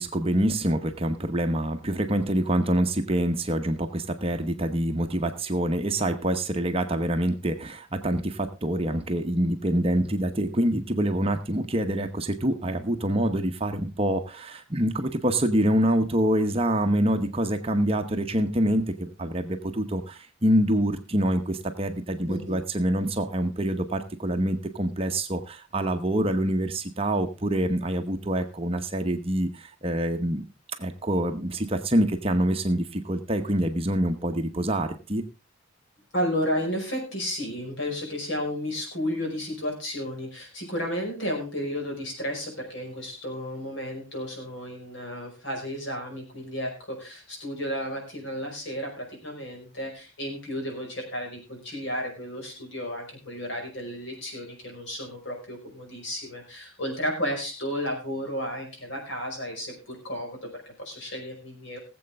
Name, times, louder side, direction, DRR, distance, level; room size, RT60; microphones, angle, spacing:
voice 1, 0.0-30.4 30.8-35.2, right 1 dB, 30° right, 6 dB, 1.0 m, -26 dB
voice 2, 22.3-22.6 36.1-61.8, equal, 60° left, 2 dB, 5.2 m, -33 dB
20.0 x 7.8 x 3.5 m, 0.29 s
head